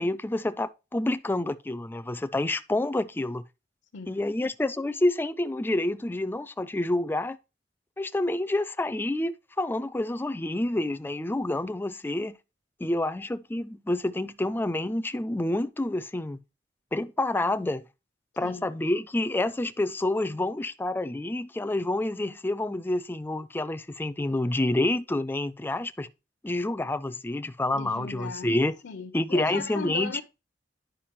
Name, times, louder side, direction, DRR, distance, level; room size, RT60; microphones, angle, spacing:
voice 1, 0.0-3.4 4.1-7.4 8.0-12.4 12.8-16.4 16.9-17.9 18.4-26.1 26.4-28.7 29.1-30.2, left 1 dB, 10° left, 0.3 m, -28 dB
voice 2, 27.7-28.5 28.8-30.2, left 4 dB, 75° left, 0.6 m, -37 dB
10.0 x 5.1 x 2.9 m
head